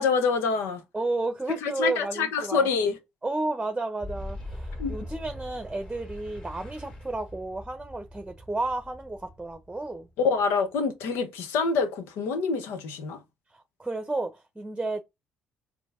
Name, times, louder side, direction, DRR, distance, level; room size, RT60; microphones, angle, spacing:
voice 1, 0.0-0.8 1.6-3.0 4.8-5.0 10.2-13.2, left 5 dB, 75° left, 0.9 m, -26 dB
voice 2, 0.9-2.7 3.2-10.1 13.5-15.0, right 2 dB, 15° right, 0.9 m, -32 dB
Boom, 4.0-10.6, left 1 dB, 25° left, 2.1 m, -41 dB
4.4 x 3.0 x 3.7 m
hypercardioid pair, 60°, 4 cm